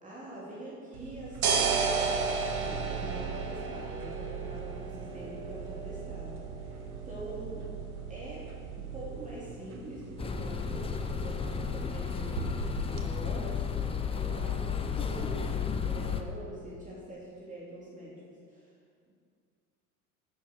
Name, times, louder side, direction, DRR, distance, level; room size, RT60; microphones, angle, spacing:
voice 1, 0.0-7.7 8.1-18.7, right 1 dB, 15° right, -7 dB, 3.2 m, -44 dB
sound 1, 0.9-13.1, right 5 dB, 65° right, 1.3 m, -35 dB
sound 2, 10.2-16.2, left 6 dB, 10° left, 0.6 m, -33 dB
11.5 x 10.5 x 4.6 m, 2.2 s
figure-of-eight pair, 75°, 46 cm